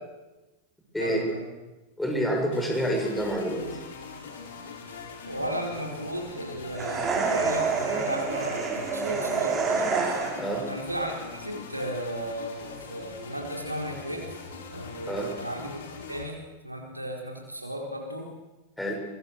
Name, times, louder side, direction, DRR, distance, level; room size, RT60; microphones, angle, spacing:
voice 1, 1.0-1.5 5.2-9.9 10.7-14.3 14.7-15.8 16.1-16.4 16.6-18.3, right 1 dB, 85° right, 1 dB, 4.8 m, -35 dB
voice 2, 2.0-3.7 10.4-10.7 15.1-15.3 18.8-19.0, equal, 5° left, 1 dB, 7.0 m, -28 dB
sound 1, 2.5-16.2, left 4 dB, 60° left, 4.6 m, -42 dB
sound 2, 6.7-10.6, right 5 dB, 20° right, 5.1 m, -27 dB
24.0 x 22.0 x 6.8 m, 1.1 s
figure-of-eight pair, 90°, 0 cm